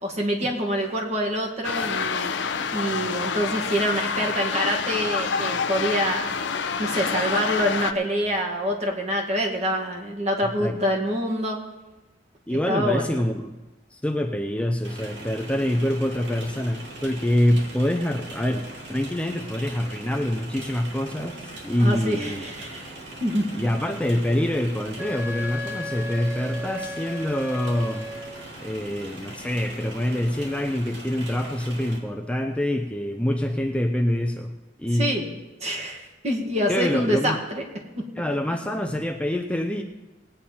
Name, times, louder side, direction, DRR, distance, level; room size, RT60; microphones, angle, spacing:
voice 1, 0.0-2.3 2.7-11.6 12.5-13.2 21.8-22.9 23.2-23.5 34.9-35.2 35.6-37.6, equal, 40° right, 0 dB, 2.1 m, -26 dB
sound 1, 1.6-7.9, left 5 dB, 75° left, 0.7 m, -27 dB
voice 2, 12.5-13.5 13.9-22.5 23.6-28.1 28.6-34.5 34.8-35.1 36.7-37.4 38.2-39.8, left 1 dB, 5° left, 4 dB, 0.6 m, -25 dB
sound 2, 14.8-32.0, right 1 dB, 70° right, 2.5 m, -41 dB
Wind instrument woodwind instrument, 25.0-28.5, left 1 dB, 15° right, 1.3 m, -35 dB
19.0 x 8.9 x 4.3 m, 1.1 s
head